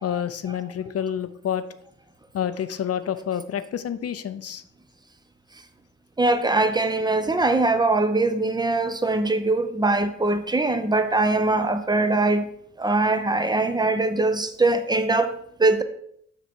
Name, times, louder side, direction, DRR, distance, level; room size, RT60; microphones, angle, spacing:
voice 1, 0.0-1.6 2.3-4.6, left 9 dB, 50° left, 0.6 m, -28 dB
voice 2, 6.2-12.5 12.8-15.8, right 2 dB, 15° right, 0.7 m, -22 dB
6.8 x 6.2 x 4.5 m
cardioid pair, 100°, 31 cm